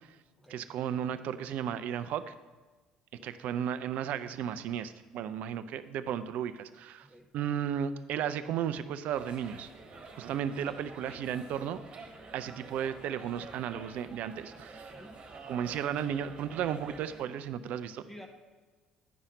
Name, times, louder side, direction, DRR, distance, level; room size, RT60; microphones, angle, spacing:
voice 1, 0.5-2.3 3.2-7.1 7.3-9.7 10.1-11.8 12.3-14.9 15.5-18.1, right 9 dB, 60° right, 13 dB, 0.4 m, -34 dB
sound 1, 9.1-17.2, right 3 dB, 40° right, 1.6 m, -49 dB
voice 2, 10.7-11.2 14.9-15.2 18.0-18.3, equal, 5° left, 3 dB, 1.0 m, -52 dB
9.5 x 5.6 x 5.1 m, 1.3 s
hypercardioid pair, 55°, 3 cm